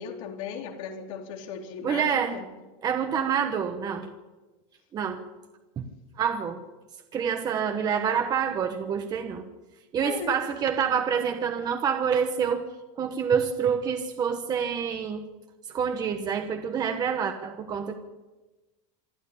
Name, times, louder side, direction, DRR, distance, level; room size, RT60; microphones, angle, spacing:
voice 1, 0.0-2.5 10.0-10.4, left 7 dB, 90° left, 1 dB, 4.0 m, -37 dB
voice 2, 1.8-2.4 2.8-4.1 4.9-5.2 5.8-5.9 6.2-6.6 7.1-9.5 9.9-12.7 13.0-15.2 15.7-17.9, right 7 dB, 25° right, 6 dB, 1.1 m, -27 dB
26.5 x 11.0 x 10.0 m, 1.2 s
cardioid pair, 175°, 17 cm